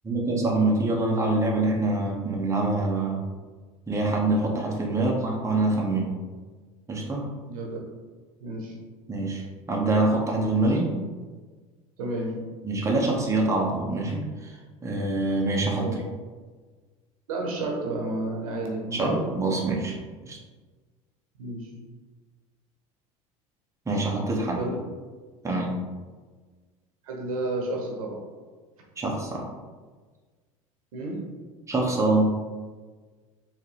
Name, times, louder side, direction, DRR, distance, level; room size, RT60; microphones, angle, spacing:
voice 1, 0.0-3.2 3.9-6.1 6.9-7.3 9.1-10.9 12.6-15.9 18.9-20.0 20.2-20.4 23.9-24.6 25.4-25.7 29.0-29.4 31.7-32.3, right 2 dB, 15° right, -2 dB, 1.0 m, -25 dB
voice 2, 7.5-7.8 8.4-8.8 12.0-12.5 15.8-16.0 17.3-19.3 21.4-21.7 24.5-24.8 27.0-28.2 30.9-31.4, right 2 dB, 80° right, 0 dB, 0.9 m, -31 dB
4.5 x 3.2 x 3.3 m, 1.4 s
hypercardioid pair, 75°, 18 cm